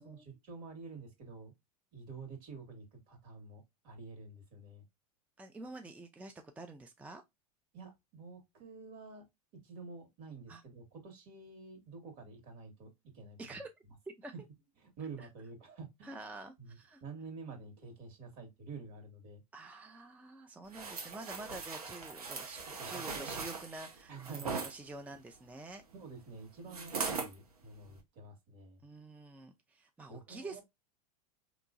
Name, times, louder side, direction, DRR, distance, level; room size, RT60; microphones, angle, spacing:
voice 1, 0.0-1.5 1.9-4.8 7.7-9.2 9.5-13.6 14.3-14.4 14.8-16.2 16.6-19.4 22.8-23.3 24.1-24.5 25.1-25.2 25.9-28.8 30.1-30.6, right 4 dB, 50° right, 1.9 m, -49 dB
voice 2, 5.4-7.2 10.5-10.6 13.4-13.7 14.2-14.3 15.2-15.3 16.0-17.0 19.5-25.8 26.7-27.0 28.8-30.6, right 2 dB, 5° right, 0.4 m, -48 dB
sound 1, 20.7-24.7 26.7-27.3 27.9-28.0, right 5 dB, 90° right, 0.9 m, -40 dB
4.4 x 3.0 x 2.5 m
hypercardioid pair, 95°, 19 cm